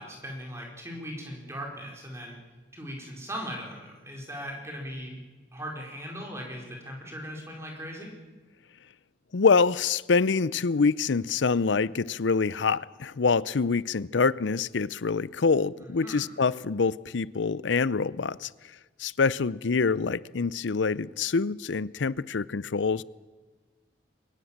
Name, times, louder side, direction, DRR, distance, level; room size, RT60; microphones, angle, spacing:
voice 1, 0.0-2.4 2.7-5.2 5.5-8.1 16.0-16.2, equal, 15° right, 4.8 m, -39 dB
voice 2, 9.3-18.5 19.0-23.0, left 4 dB, 85° left, 0.6 m, -25 dB
23.5 x 19.5 x 7.4 m
head